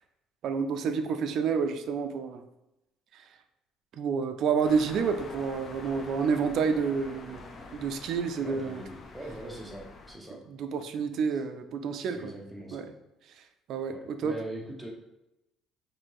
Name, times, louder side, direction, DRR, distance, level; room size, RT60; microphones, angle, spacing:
voice 1, 0.4-2.4 3.1-3.2 3.9-7.4 7.7-8.8 10.6-12.3 12.7-12.8 13.7-14.3, right 6 dB, 55° right, 7 dB, 0.3 m, -29 dB
sound 1, 4.6-10.2, left 3 dB, 30° left, 0.4 m, -46 dB
voice 2, 8.4-10.4 11.3-11.4 12.0-12.9 13.9-14.9, right 1 dB, 5° right, -1 dB, 0.7 m, -42 dB
4.3 x 2.7 x 2.9 m, 0.92 s
cardioid pair, 145°, 0 cm